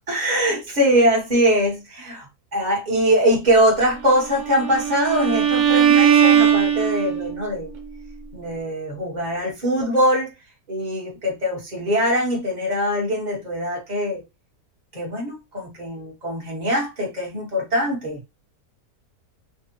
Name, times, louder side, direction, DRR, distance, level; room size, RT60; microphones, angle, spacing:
voice 1, 0.1-7.7 8.3-10.3 10.7-14.2 14.9-18.2, equal, 30° right, 1.2 m, -22 dB
Bowed string instrument, 4.3-7.4, right 9 dB, 80° right, 1.3 m, -18 dB
3.4 x 2.3 x 2.9 m
omnidirectional pair, 1.7 m